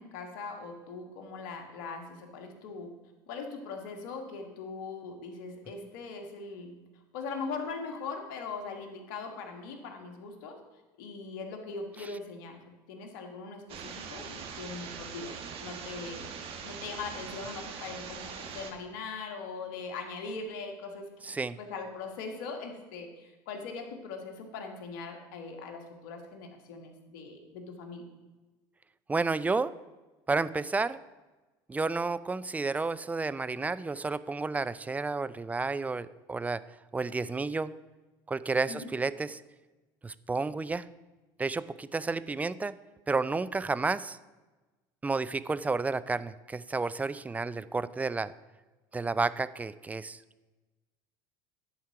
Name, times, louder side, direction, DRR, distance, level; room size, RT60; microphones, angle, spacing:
voice 1, 0.0-2.9 3.3-6.8 7.1-10.6 11.0-12.6 12.9-16.3 16.6-28.0 38.7-38.8, left 4 dB, 75° left, 4 dB, 1.4 m, -41 dB
sound 1, 13.7-18.7, right 6 dB, 55° right, 1.2 m, -42 dB
voice 2, 21.2-21.6 29.1-29.7 30.3-31.0 31.7-36.6 36.9-37.7 38.3-39.4 40.0-40.9 41.4-42.7 43.1-44.2 45.0-48.3 48.9-50.2, right 3 dB, 15° right, 16 dB, 0.3 m, -31 dB
10.5 x 4.4 x 5.7 m, 1.2 s
hypercardioid pair, 80°, 11 cm